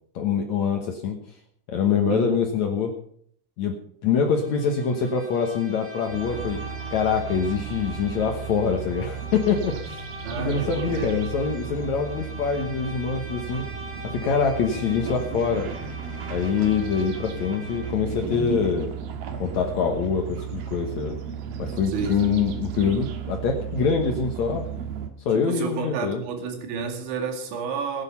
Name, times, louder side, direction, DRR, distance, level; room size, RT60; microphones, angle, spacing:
voice 1, 0.1-1.2 1.7-2.9 3.6-6.6 6.9-10.0 10.4-13.7 14.1-15.7 16.3-18.9 19.4-21.1 21.6-24.7 25.2-26.2, left 6 dB, 90° left, 3 dB, 1.6 m, -25 dB
Bowed string instrument, 4.2-18.1, equal, 20° right, 2.4 m, -42 dB
sound 1, 6.1-25.1, right 7 dB, 65° right, 2.6 m, -34 dB
voice 2, 10.2-11.3 21.9-22.5 25.3-28.0, right 5 dB, 85° right, 4 dB, 4.6 m, -30 dB
16.5 x 11.0 x 5.6 m, 0.64 s
omnidirectional pair, 5.3 m